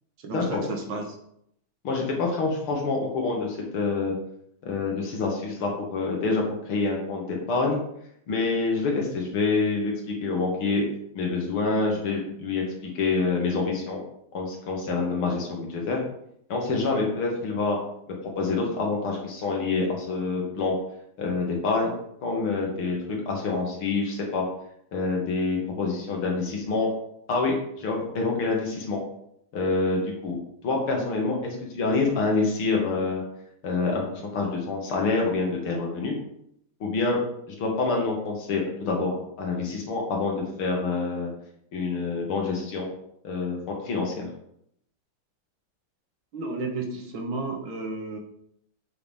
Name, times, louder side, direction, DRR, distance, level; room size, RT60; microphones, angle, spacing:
voice 1, 0.2-1.2 46.3-48.2, right 2 dB, 70° right, 2 dB, 2.0 m, -32 dB
voice 2, 1.8-4.1 4.6-7.8 8.3-9.9 10.2-10.8 11.1-14.0 14.3-16.0 16.5-17.8 18.4-20.8 21.2-21.9 22.2-24.4 24.9-26.9 27.3-29.0 29.5-30.4 30.6-33.2 33.6-36.1 36.8-37.2 37.6-41.3 41.7-42.9 43.2-43.6 43.8-44.3, left 3 dB, 80° left, 0 dB, 2.6 m, -26 dB
8.1 x 5.9 x 3.6 m, 0.73 s
omnidirectional pair, 2.3 m